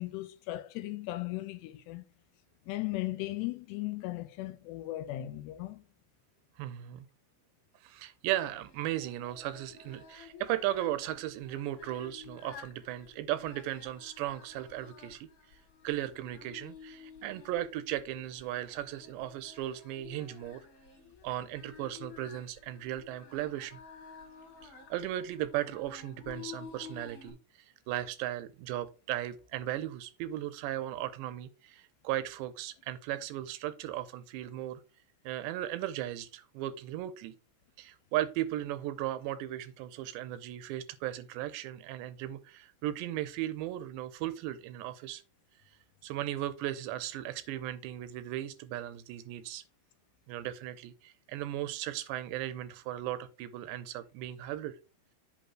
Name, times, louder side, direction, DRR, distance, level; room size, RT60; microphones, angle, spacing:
voice 1, 0.0-2.0 2.7-5.8, left 17 dB, 85° left, 2.7 m, -37 dB
voice 2, 6.6-7.1 7.8-15.3 15.8-20.6 21.2-23.8 24.6-27.4 27.9-34.8 35.2-37.4 37.8-45.2 46.0-49.6 50.3-54.8, right 13 dB, 85° right, 3.0 m, -36 dB
Singing, 8.6-27.3, left 6 dB, 40° left, 2.6 m, -52 dB
8.0 x 3.6 x 6.0 m
omnidirectional pair, 5.0 m